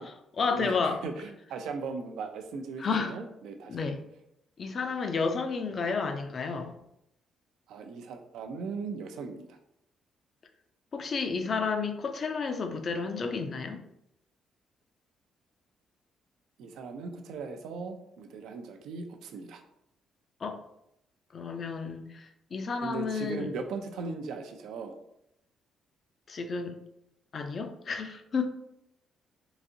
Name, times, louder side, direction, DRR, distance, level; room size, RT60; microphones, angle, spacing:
voice 1, 0.0-1.0 2.8-3.2 3.7-4.0 4.6-6.8 10.9-13.8 20.4-20.6 21.3-23.5 26.3-26.8 27.3-28.5, left 4 dB, 45° left, 6 dB, 0.5 m, -31 dB
voice 2, 0.5-3.8 7.7-9.6 16.6-19.6 22.8-25.0, right 4 dB, 85° right, 5 dB, 0.4 m, -38 dB
3.9 x 2.5 x 2.7 m, 0.80 s
cardioid pair, 90°, 0 cm